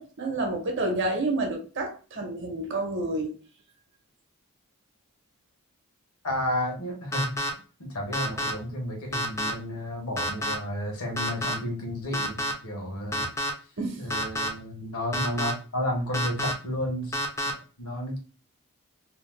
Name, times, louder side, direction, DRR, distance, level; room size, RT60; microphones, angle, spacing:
voice 1, 0.0-3.4 13.8-14.0, right 2 dB, 55° right, 0.8 m, -29 dB
voice 2, 6.2-7.4 7.8-13.3 14.0-17.2 17.8-18.2, left 1 dB, 75° left, 1.0 m, -32 dB
sound 1, 7.1-7.5 8.1-8.5 9.1-9.5 10.2-10.5 11.2-11.5 12.1-12.5 13.1-13.5 14.1-14.5 15.1-15.5 16.1-16.5 17.1-17.5, equal, 15° left, 0.3 m, -28 dB
2.7 x 2.1 x 3.2 m
head